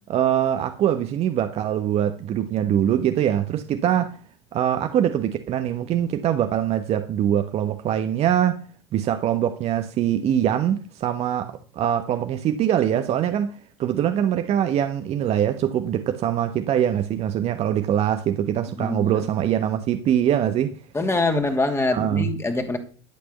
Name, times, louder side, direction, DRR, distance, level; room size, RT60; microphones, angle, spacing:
voice 1, 0.1-4.1 4.5-8.6 8.9-20.7 21.9-22.3, right 10 dB, 45° right, 1.1 m, -23 dB
voice 2, 18.8-19.2 20.9-22.8, left 2 dB, 15° left, 2.4 m, -24 dB
11.5 x 6.7 x 6.7 m
hypercardioid pair, 80°, 15 cm